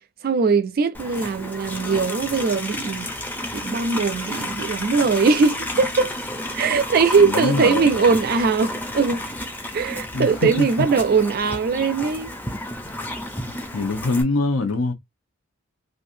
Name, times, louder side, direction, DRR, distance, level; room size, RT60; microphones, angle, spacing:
voice 1, 0.2-3.1 3.5-6.1 6.5-9.2 9.7-12.3, right 5 dB, 45° right, 0.4 m, -20 dB
Livestock farm animals working animals, 0.9-14.2, left 1 dB, 10° left, 0.5 m, -31 dB
voice 2, 7.2-8.1 10.1-10.9 13.7-14.9, left 2 dB, 90° left, 0.9 m, -24 dB
3.2 x 2.6 x 2.6 m
head